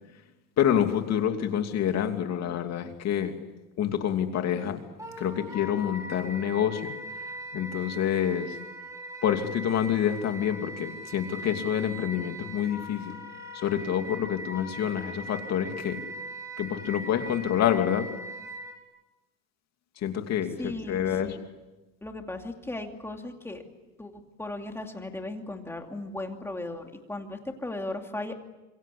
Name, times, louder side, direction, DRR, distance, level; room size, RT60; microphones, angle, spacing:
voice 1, 0.6-3.3 3.8-4.8 5.2-6.9 7.5-8.6 9.2-13.1 13.5-16.0 16.6-18.1 20.0-21.4, left 9 dB, 45° left, 6 dB, 2.8 m, -27 dB
Wind instrument woodwind instrument, 5.0-18.8, right 1 dB, 10° right, 4.6 m, -40 dB
voice 2, 20.6-21.4 22.0-23.6 24.0-28.3, left 2 dB, 5° left, 3 dB, 2.7 m, -37 dB
26.5 x 23.5 x 8.5 m, 1.1 s
cardioid pair, 145°, 35 cm